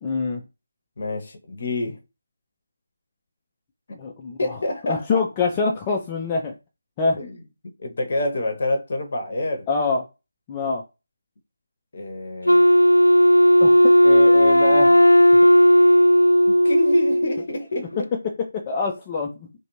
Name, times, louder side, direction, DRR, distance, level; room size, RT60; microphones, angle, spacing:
voice 1, 0.0-0.4 3.9-4.6 4.9-6.5 7.0-7.2 9.7-10.0 10.5-10.8 13.6-15.0 18.5-19.5, left 4 dB, 20° left, 0.4 m, -25 dB
voice 2, 1.0-2.0 4.4-5.2 7.2-7.4 7.8-9.7 11.9-12.7 16.6-18.1, left 1 dB, 45° left, 0.7 m, -27 dB
Wind instrument woodwind instrument, 12.5-17.4, equal, 85° left, 0.3 m, -14 dB
2.5 x 2.2 x 3.0 m
figure-of-eight pair, 155°, 0 cm